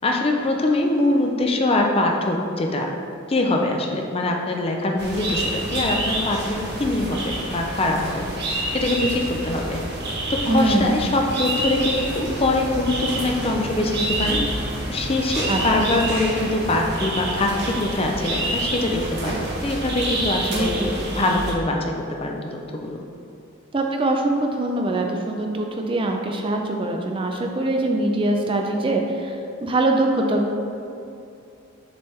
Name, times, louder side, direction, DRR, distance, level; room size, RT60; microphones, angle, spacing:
voice 1, 0.0-2.9 3.3-9.8 10.3-14.4 14.9-20.7 21.1-23.0, left 2 dB, 30° left, 2 dB, 0.5 m, -23 dB
sound 1, 5.0-21.5, right 1 dB, 55° right, 1.1 m, -28 dB
voice 2, 10.5-10.9 15.5-15.6 20.5-21.0 23.7-30.6, right 1 dB, 25° right, 2 dB, 0.4 m, -23 dB
6.8 x 3.3 x 4.3 m, 2.7 s
head